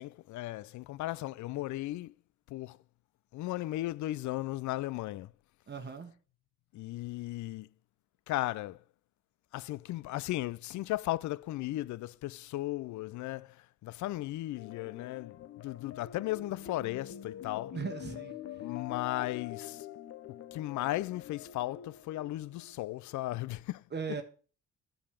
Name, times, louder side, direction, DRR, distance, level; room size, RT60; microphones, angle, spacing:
voice 1, 0.0-2.1 2.5-2.8 3.3-5.3 6.7-7.7 8.3-8.8 9.5-17.8 18.6-19.9 20.5-23.8, left 16 dB, 70° left, 0.5 m, -36 dB
voice 2, 5.7-6.1 17.7-18.4 23.9-24.2, right 6 dB, 35° right, 1.1 m, -38 dB
sound 1, 14.6-23.2, left 10 dB, 50° left, 0.8 m, -46 dB
8.7 x 7.1 x 5.0 m
cardioid pair, 90°, 30 cm